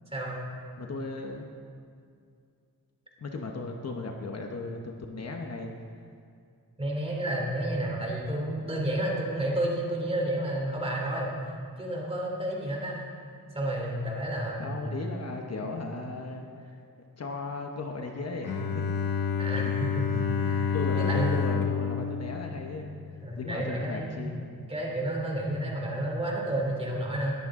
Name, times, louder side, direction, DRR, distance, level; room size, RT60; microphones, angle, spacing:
voice 1, 0.8-1.5 3.2-5.7 14.6-16.8 17.2-18.8 20.1-20.4 20.7-24.5, left 3 dB, 45° left, 2 dB, 1.1 m, -36 dB
voice 2, 6.8-11.3 11.8-13.0 13.5-14.8 19.4-20.0 20.4-21.4 23.2-24.3 24.7-27.3, right 1 dB, 15° right, -2 dB, 2.9 m, -31 dB
Bowed string instrument, 18.4-23.4, left 6 dB, 85° left, 1.3 m, -29 dB
20.5 x 14.0 x 3.8 m, 2.3 s
wide cardioid pair, 165°, 35 cm